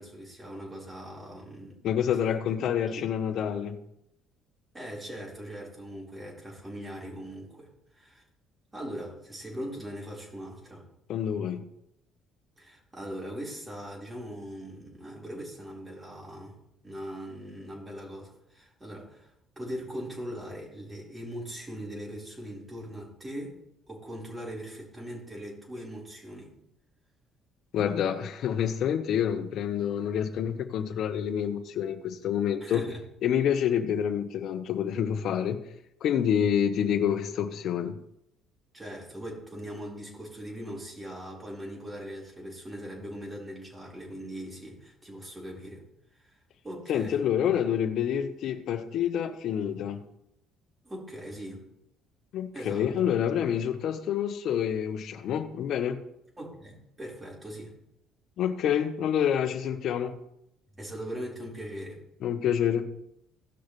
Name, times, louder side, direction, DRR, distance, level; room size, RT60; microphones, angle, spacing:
voice 1, 0.0-1.8 2.6-2.7 2.9-3.1 4.7-8.2 8.7-10.9 12.6-16.6 16.8-23.6 23.9-26.5 32.6-33.0 38.7-45.9 46.1-46.3 46.6-47.2 50.8-51.7 52.5-53.1 56.4-57.7 60.7-62.0, equal, 15° right, 4.6 m, -40 dB
voice 2, 1.8-3.8 11.1-11.6 27.7-32.8 33.2-35.6 36.0-38.0 46.9-50.0 52.3-56.0 58.4-60.1 62.2-62.9, left 9 dB, 65° left, 1.1 m, -27 dB
17.0 x 6.4 x 3.3 m
cardioid pair, 100°, 0 cm